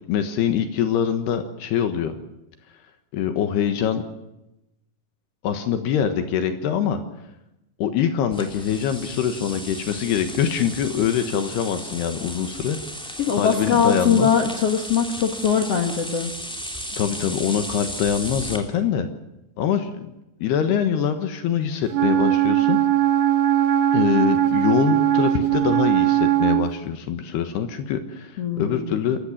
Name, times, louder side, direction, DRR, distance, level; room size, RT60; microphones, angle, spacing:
voice 1, 0.1-2.1 3.1-4.0 5.4-7.0 7.8-12.8 13.3-14.3 16.9-19.1 19.6-20.1 20.4-22.8 23.9-29.2, left 8 dB, 75° left, 8 dB, 3.3 m, -24 dB
sound 1, 8.3-18.6, equal, ahead, 2.0 m, -35 dB
voice 2, 13.2-16.3 28.4-29.1, left 7 dB, 60° left, 4 dB, 1.6 m, -21 dB
Wind instrument woodwind instrument, 21.9-26.7, right 12 dB, 80° right, 1.9 m, -19 dB
27.5 x 15.0 x 7.3 m, 0.91 s
omnidirectional pair, 4.9 m